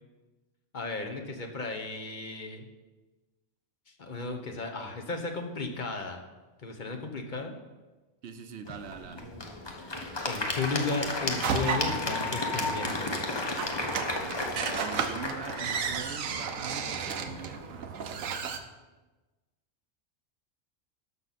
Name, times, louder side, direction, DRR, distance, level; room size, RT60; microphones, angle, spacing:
voice 1, 0.7-2.7 4.0-6.2 6.6-7.5 10.2-13.4, left 3 dB, 40° left, 3 dB, 1.1 m, -34 dB
voice 2, 8.2-9.3 14.8-17.9, right 6 dB, 65° right, 9 dB, 0.9 m, -42 dB
Applause / Crowd, 8.7-17.7, left 2 dB, 25° left, 0.7 m, -34 dB
sound 1, 11.4-18.6, right 6 dB, 85° right, 1.1 m, -34 dB
12.5 x 6.0 x 4.1 m, 1.2 s
omnidirectional pair, 1.3 m